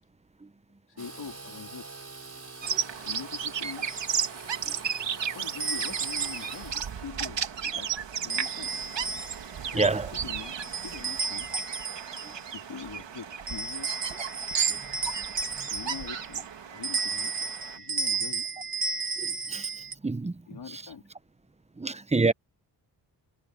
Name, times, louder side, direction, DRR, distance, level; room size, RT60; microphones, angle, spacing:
voice 1, 0.9-1.9 3.0-3.9 5.3-7.4 7.7-7.9 8.2-8.7 9.7-10.0 10.2-10.5 10.8-11.5 12.5-13.9 15.0-15.3 15.7-17.3 17.7-18.5 20.5-21.0, left 6 dB, 60° left, 3.5 m, -43 dB
Engine / Sawing, 1.0-10.5, right 3 dB, 35° right, 5.7 m, -47 dB
Bird vocalization bird call bird song, 2.6-17.8, right 7 dB, 70° right, 2.9 m, -34 dB
sound 1, 3.9-4.1 5.6-6.7 8.3-9.5 10.6-12.4 13.5-16.3 16.8-19.9, right 5 dB, 50° right, 1.8 m, -33 dB
voice 2, 9.7-10.1 14.7-14.8 19.2-19.7 20.0-20.3 20.7-20.8 21.8-22.3, right 3 dB, 15° right, 0.9 m, -27 dB
cardioid pair, 70°, 45 cm